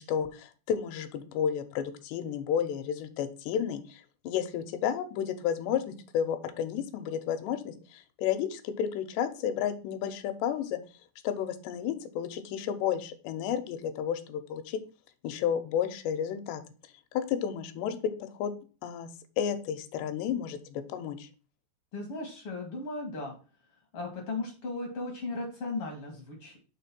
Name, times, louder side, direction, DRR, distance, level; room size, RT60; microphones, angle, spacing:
voice 1, 0.0-10.8 11.2-14.8 15.2-16.6 17.1-18.5 18.8-19.1 19.4-21.3, left 8 dB, 85° left, 9 dB, 2.9 m, -32 dB
voice 2, 21.9-23.3 23.9-26.6, left 3 dB, 65° left, 2 dB, 1.4 m, -36 dB
6.4 x 3.7 x 5.9 m, 0.37 s
omnidirectional pair, 4.8 m